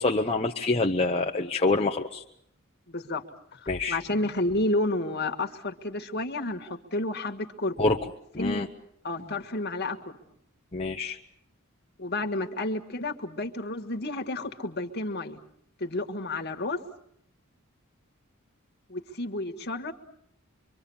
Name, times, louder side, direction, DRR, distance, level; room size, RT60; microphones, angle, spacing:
voice 1, 0.0-2.2 3.7-4.0 7.8-8.0 8.3-8.7 10.7-11.2, left 3 dB, 30° left, 1 dB, 1.0 m, -26 dB
voice 2, 2.9-3.2 3.5-8.0 8.4-8.6 9.0-10.2 12.0-15.4 15.8-16.8 18.9-19.9, left 2 dB, 50° left, 5 dB, 1.9 m, -31 dB
25.5 x 24.5 x 7.2 m, 0.70 s
head